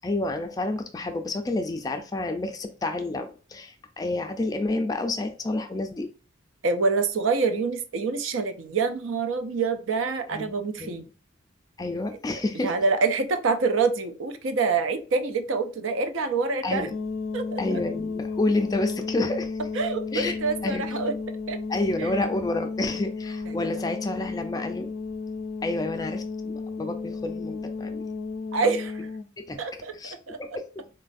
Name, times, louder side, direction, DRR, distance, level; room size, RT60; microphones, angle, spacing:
voice 1, 0.0-6.1 10.3-11.1 11.8-12.7 16.6-16.9 17.6-19.6 20.1-20.8 21.7-24.9 25.6-28.0 29.4-29.6 29.9-30.1 30.4-30.8, left 2 dB, 20° left, 6 dB, 0.3 m, -29 dB
voice 2, 6.6-11.1 12.6-16.9 17.3-17.8 19.7-21.1 21.5-21.6 22.0-22.2 23.5-23.6 28.5-29.1 29.6-29.9 30.3-30.4, right 4 dB, 70° right, 9 dB, 0.5 m, -26 dB
sound 1, 16.9-29.3, left 4 dB, 75° left, 0.5 m, -33 dB
3.9 x 2.4 x 2.5 m, 0.36 s
head